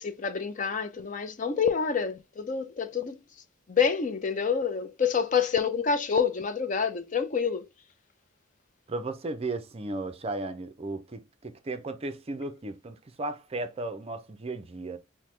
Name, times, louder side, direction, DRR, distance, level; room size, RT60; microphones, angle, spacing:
voice 1, 0.0-3.2 3.7-7.7, left 6 dB, 35° left, 0.4 m, -27 dB
voice 2, 8.9-15.0, right 2 dB, 30° right, 0.5 m, -35 dB
5.8 x 2.1 x 3.1 m
head